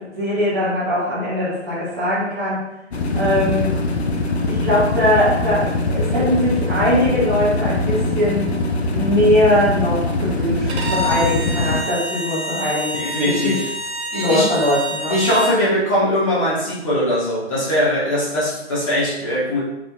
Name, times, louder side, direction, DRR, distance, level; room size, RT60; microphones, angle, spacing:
voice 1, 0.1-2.6 3.1-3.7 4.5-8.5 8.9-12.9 13.2-13.6 14.1-15.2, left 1 dB, 20° right, -11 dB, 0.7 m, -20 dB
sound 1, 2.9-11.8, left 2 dB, 60° left, 0.5 m, -22 dB
Bowed string instrument, 10.7-15.6, equal, 60° right, 0.6 m, -27 dB
voice 2, 13.0-13.7 14.1-14.5 15.1-19.6, left 1 dB, 25° left, -8 dB, 0.8 m, -20 dB
2.7 x 2.6 x 2.2 m, 0.88 s
figure-of-eight pair, 135°, 36 cm